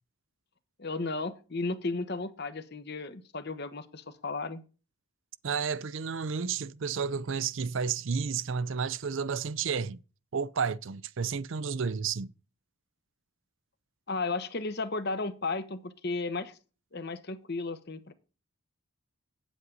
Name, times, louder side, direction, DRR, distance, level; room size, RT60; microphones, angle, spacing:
voice 1, 0.8-4.6 14.1-16.6 16.9-18.1, left 3 dB, 45° left, 1.0 m, -34 dB
voice 2, 5.4-10.0 10.3-12.3, right 6 dB, 60° right, 0.5 m, -31 dB
9.5 x 8.2 x 3.9 m
head